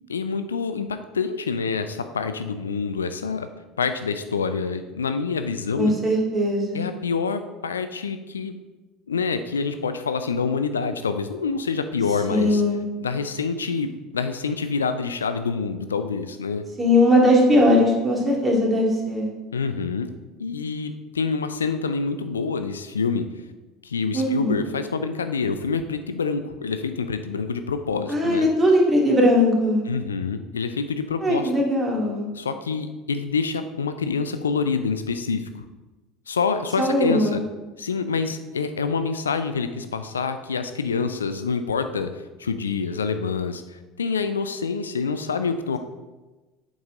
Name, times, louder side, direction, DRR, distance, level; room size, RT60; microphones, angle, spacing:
voice 1, 0.1-3.5 3.8-5.9 6.7-8.6 9.1-12.6 13.0-13.9 14.1-16.6 19.5-20.1 20.4-23.2 23.8-28.5 29.9-31.5 32.3-35.6 36.3-37.4 37.8-42.1 42.4-45.8, left 5 dB, 80° left, 9 dB, 0.4 m, -26 dB
voice 2, 5.8-6.9 12.3-12.9 16.8-19.3 24.1-24.6 28.1-29.8 31.2-32.3 36.8-37.4, left 1 dB, 20° right, -2 dB, 2.3 m, -19 dB
7.8 x 5.4 x 3.8 m, 1.2 s
figure-of-eight pair, 70°, 0 cm